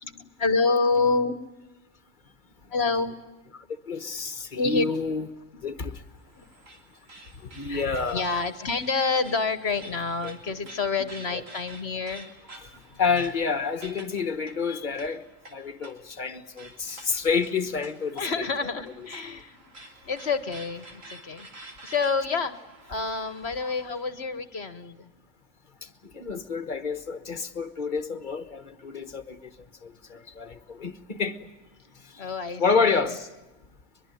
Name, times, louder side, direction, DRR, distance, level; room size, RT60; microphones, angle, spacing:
voice 1, 0.0-1.4 2.7-3.1 4.5-4.8 6.4-6.5 7.6-12.3 16.9-17.0 18.2-19.6 20.0-22.6 22.9-25.1 32.2-33.1, left 4 dB, 55° left, 1.4 m, -28 dB
voice 2, 3.9-5.3 5.6-6.0 7.4-8.2 10.2-10.3 11.3-11.4 12.5-15.2 15.5-18.4 19.2-19.4 23.6-23.7 25.8-29.5 29.8-31.5 32.0-32.2 32.6-33.3, left 5 dB, 40° left, 1.4 m, -29 dB
sound 1, 5.9-24.1, right 2 dB, 90° right, 3.4 m, -49 dB
23.0 x 22.5 x 9.2 m
omnidirectional pair, 1.3 m